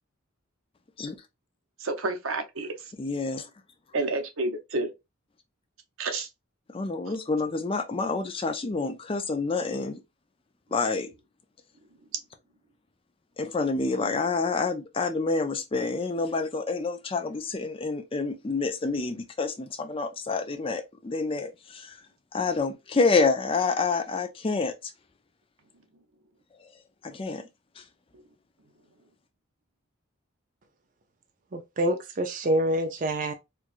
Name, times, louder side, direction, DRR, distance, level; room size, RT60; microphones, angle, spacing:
voice 1, 1.8-2.7 3.9-4.9 6.0-6.3, right 2 dB, 75° right, 0.8 m, -29 dB
voice 2, 3.0-3.5 6.7-10.0 10.7-11.1 13.4-21.9 22.3-24.9 27.0-27.4 27.8-27.9, left 4 dB, 25° left, 0.4 m, -28 dB
voice 3, 31.5-33.3, right 1 dB, 40° right, 0.4 m, -26 dB
4.4 x 2.4 x 2.4 m
head